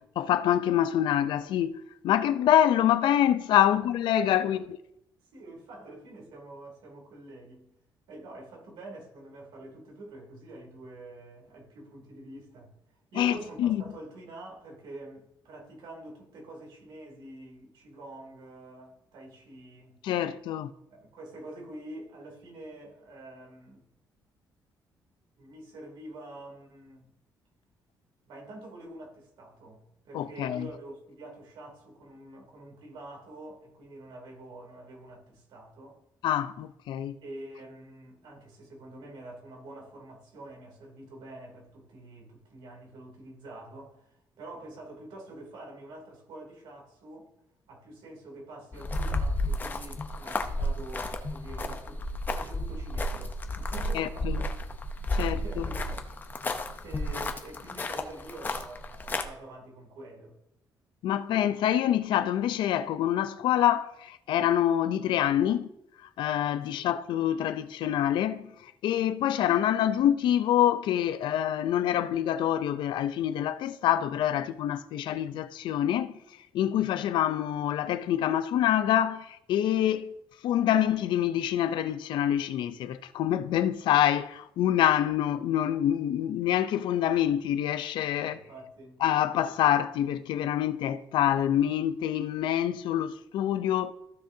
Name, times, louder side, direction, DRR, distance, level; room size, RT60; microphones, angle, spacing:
voice 1, 0.2-4.6 13.2-13.8 20.0-20.7 30.1-30.7 36.2-37.2 53.9-54.4 55.1-55.7 61.0-65.7 66.2-76.2 76.5-80.1 80.4-88.4 89.0-93.9, left 11 dB, 85° left, 0.5 m, -26 dB
voice 2, 4.2-4.7 5.3-7.7 8.1-12.7 13.1-20.0 20.9-23.8 25.4-27.1 28.2-36.0 37.2-47.3 47.7-54.5 55.0-56.0 56.8-60.4 66.7-66.9 88.1-89.0, right 1 dB, 85° right, 2.8 m, -46 dB
sound 1, 48.7-59.2, left 1 dB, 25° left, 0.7 m, -32 dB
14.5 x 6.5 x 2.7 m
cardioid pair, 160°, 8 cm